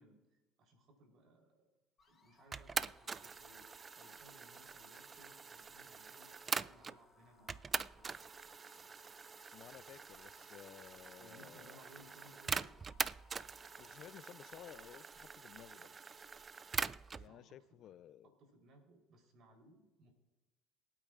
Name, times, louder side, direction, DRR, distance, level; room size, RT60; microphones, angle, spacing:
voice 1, 0.0-1.7 2.1-8.2 11.2-12.7 17.1-17.6 18.2-20.1, right 1 dB, 60° right, 3.8 m, -63 dB
sound 1, 2.0-15.0, left 4 dB, 35° left, 3.5 m, -68 dB
sound 2, 2.5-7.0 7.5-17.3, right 5 dB, 35° right, 0.4 m, -43 dB
voice 2, 9.5-11.8 13.8-16.0 17.2-18.3, left 11 dB, 60° left, 0.5 m, -56 dB
22.5 x 8.8 x 2.5 m
hypercardioid pair, 65°, 0 cm